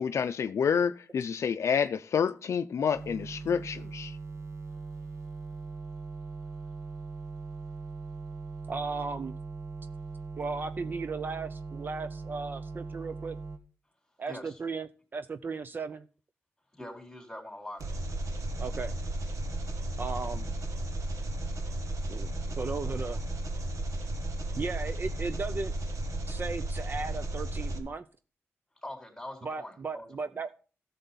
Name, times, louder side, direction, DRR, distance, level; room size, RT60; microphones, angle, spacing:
voice 1, 0.0-4.1, left 7 dB, 70° left, 0.5 m, -28 dB
sound 1, 2.9-13.6, right 4 dB, 65° right, 1.5 m, -40 dB
voice 2, 8.7-9.3 10.4-13.4 14.2-16.1 18.6-19.0 20.0-20.5 22.1-23.3 24.6-25.7 26.3-28.1 29.4-30.5, right 4 dB, 40° right, 0.5 m, -36 dB
voice 3, 14.2-14.6 16.7-17.8 28.8-30.1, left 1 dB, 5° left, 3.5 m, -43 dB
Engine, 17.8-27.8, right 1 dB, 85° right, 1.6 m, -34 dB
14.0 x 6.9 x 4.0 m
wide cardioid pair, 130°, 5 cm